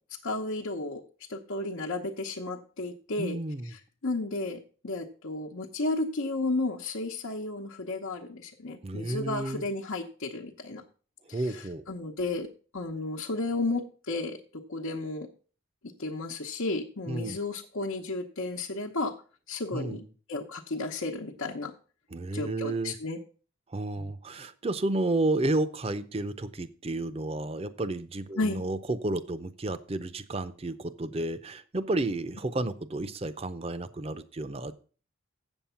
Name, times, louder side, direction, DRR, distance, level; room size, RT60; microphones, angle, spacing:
voice 1, 0.1-1.0 1.3-3.4 3.6-10.8 11.3-12.5 12.7-15.3 16.0-19.1 19.5-21.7 22.3-23.2 24.0-24.1 28.4-28.6, left 2 dB, 85° left, -1 dB, 1.0 m, -33 dB
voice 2, 3.2-3.7 8.8-9.6 11.3-11.8 17.1-17.4 19.7-20.0 22.1-23.0 23.7-34.7, right 2 dB, 30° right, 14 dB, 0.5 m, -31 dB
8.0 x 7.2 x 5.7 m, 0.39 s
head